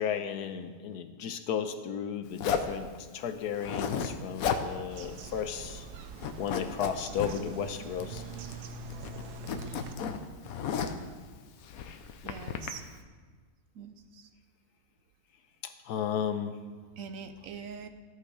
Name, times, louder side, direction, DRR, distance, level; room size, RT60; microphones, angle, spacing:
voice 1, 0.0-5.9 6.4-8.2 15.9-16.5, left 8 dB, 85° left, 9 dB, 1.3 m, -34 dB
Zipper (clothing), 2.4-2.8 3.5-4.1 4.4-4.7 5.0-5.1 5.5-5.9 6.2-7.3 8.0-8.6 8.9-11.1 11.7-12.7, left 7 dB, 70° left, 1.1 m, -33 dB
Bird vocalization bird call bird song, 4.9-9.9, right 4 dB, 90° right, 1.3 m, -43 dB
voice 2, 12.2-12.8 13.7-14.3 17.0-17.9, right 6 dB, 65° right, 8 dB, 1.0 m, -43 dB
14.0 x 8.0 x 4.9 m, 1.5 s
omnidirectional pair, 1.7 m